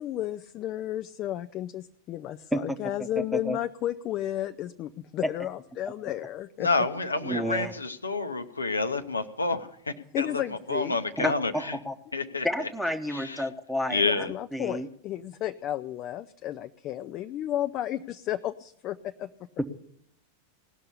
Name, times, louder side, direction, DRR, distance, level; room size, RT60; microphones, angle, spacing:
voice 1, 0.0-6.7 7.5-7.7 10.1-11.0 14.0-19.3, left 12 dB, 35° left, 10 dB, 0.5 m, -33 dB
voice 2, 3.2-3.6 7.2-7.7 11.2-11.9 12.4-14.3 14.5-14.9, equal, ahead, 6 dB, 1.0 m, -30 dB
voice 3, 6.6-10.3 10.7-11.8 12.1-12.7 13.1-13.5 13.9-14.3, left 3 dB, 80° left, 9 dB, 0.9 m, -29 dB
18.0 x 6.6 x 9.9 m, 0.71 s
figure-of-eight pair, 90°, 0 cm